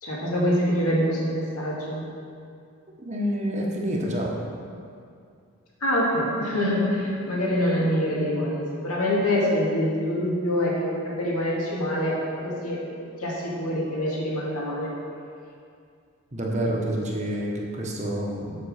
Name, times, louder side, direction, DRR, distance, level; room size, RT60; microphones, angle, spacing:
voice 1, 0.0-2.0 5.8-12.8 13.2-14.9, equal, 85° left, -5 dB, 2.3 m, -25 dB
voice 2, 3.0-4.4 16.3-18.6, equal, 30° right, -2 dB, 1.1 m, -28 dB
7.6 x 5.9 x 6.6 m, 2.3 s
head